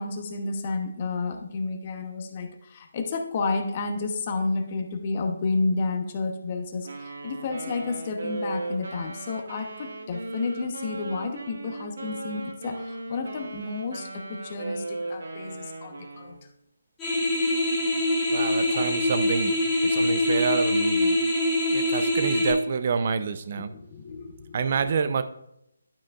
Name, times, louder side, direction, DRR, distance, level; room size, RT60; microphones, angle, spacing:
voice 1, 0.0-16.5 18.6-18.9 23.7-24.9, left 3 dB, 35° left, 5 dB, 1.0 m, -31 dB
Wind instrument woodwind instrument, 6.8-16.4, right 2 dB, 70° right, 1.5 m, -37 dB
sound 1, 17.0-22.5, left 1 dB, 10° left, 1.6 m, -24 dB
voice 2, 18.3-19.5 19.8-21.2 21.7-23.7 24.5-25.2, right 5 dB, 45° right, 11 dB, 0.5 m, -27 dB
12.0 x 5.0 x 2.4 m, 0.79 s
figure-of-eight pair, 160°, 0 cm